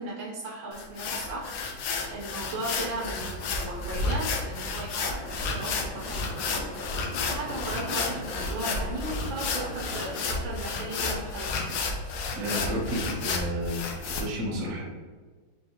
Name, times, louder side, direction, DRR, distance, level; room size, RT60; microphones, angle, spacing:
voice 1, 0.0-1.5 2.1-6.7 7.3-11.8, right 2 dB, 80° right, -3 dB, 1.5 m, -36 dB
sound 1, 0.7-14.2, left 4 dB, 75° left, 1.0 m, -31 dB
sound 2, 5.2-10.4, right 1 dB, 30° right, 1.0 m, -42 dB
voice 2, 12.3-13.8 14.1-14.8, right 1 dB, 55° right, -4 dB, 1.3 m, -31 dB
4.4 x 3.1 x 2.8 m, 1.4 s
omnidirectional pair, 2.1 m